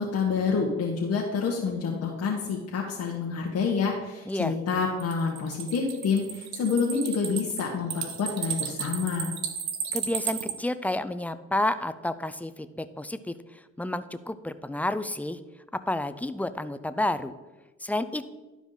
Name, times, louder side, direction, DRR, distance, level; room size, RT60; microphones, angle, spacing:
voice 1, 0.0-9.3, left 5 dB, 55° left, -3 dB, 1.4 m, -28 dB
sound 1, 5.0-10.5, right 8 dB, 70° right, 0.9 m, -33 dB
voice 2, 9.9-13.3 13.8-15.4 15.9-17.3 17.8-18.3, left 1 dB, 5° left, 12 dB, 0.4 m, -30 dB
11.5 x 5.0 x 4.0 m, 1.2 s
cardioid pair, 90°, 30 cm